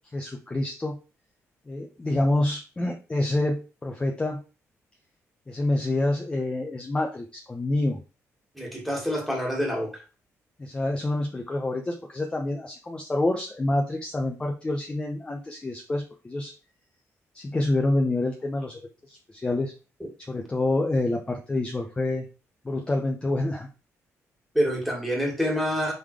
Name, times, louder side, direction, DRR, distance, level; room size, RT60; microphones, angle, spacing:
voice 1, 0.1-1.0 1.7-4.4 5.5-8.0 10.6-16.5 17.3-18.8 19.1-19.7 20.3-22.3 22.6-23.7, left 2 dB, 20° left, 1 dB, 0.8 m, -27 dB
voice 2, 8.5-10.0 24.5-25.9, equal, ahead, -1 dB, 2.3 m, -26 dB
5.4 x 3.9 x 4.9 m, 0.33 s
cardioid pair, 130°, 5 cm